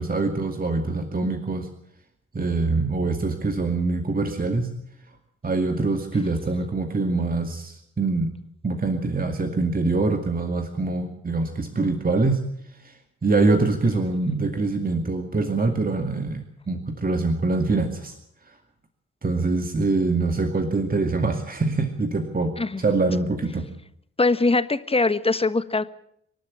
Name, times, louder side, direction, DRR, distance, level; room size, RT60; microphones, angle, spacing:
voice 1, 0.0-1.7 2.3-4.7 5.4-8.4 8.6-12.4 12.8-13.0 13.2-18.1 19.2-23.7, right 3 dB, 25° right, 5 dB, 2.4 m, -24 dB
voice 2, 24.2-25.8, left 3 dB, 15° left, 13 dB, 1.3 m, -22 dB
25.5 x 12.0 x 8.7 m, 0.73 s
figure-of-eight pair, 45°, 33 cm